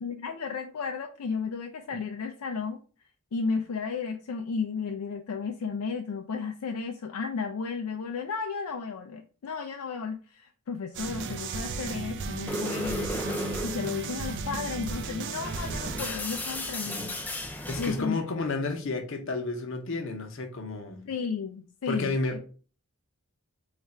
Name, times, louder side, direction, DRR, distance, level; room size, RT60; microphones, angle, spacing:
voice 1, 0.0-2.8 3.3-18.2 21.1-22.4, left 5 dB, 75° left, 0.4 m, -34 dB
sound 1, 10.9-16.1, right 4 dB, 55° right, 0.4 m, -35 dB
sound 2, 12.5-18.1, left 1 dB, 10° left, 0.4 m, -36 dB
voice 2, 17.7-21.0 21.9-22.4, left 3 dB, 60° left, 0.8 m, -31 dB
3.3 x 2.4 x 4.2 m
head